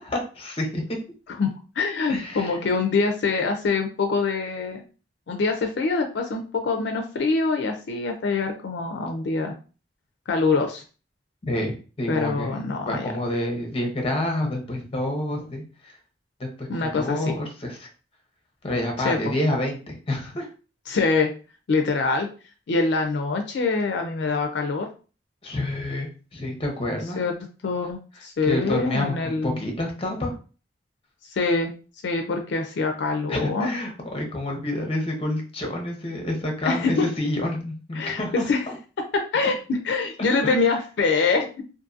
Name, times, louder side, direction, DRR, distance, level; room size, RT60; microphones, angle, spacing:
voice 1, 0.1-0.8 2.1-2.5 11.4-12.5 12.9-15.9 16.4-17.9 18.6-20.5 25.4-27.2 28.4-30.4 33.3-38.7 40.4-40.6, left 1 dB, 35° left, 2 dB, 0.7 m, -28 dB
voice 2, 1.3-4.8 5.3-9.5 10.3-10.8 12.1-13.1 16.7-17.4 19.0-19.3 20.9-21.3 21.7-22.3 22.7-24.9 27.2-27.3 27.6-29.6 31.3-31.7 32.0-33.7 36.6-37.1 37.9-38.6 39.1-41.5, left 4 dB, 70° left, 4 dB, 0.4 m, -24 dB
2.6 x 2.5 x 2.4 m, 0.35 s
head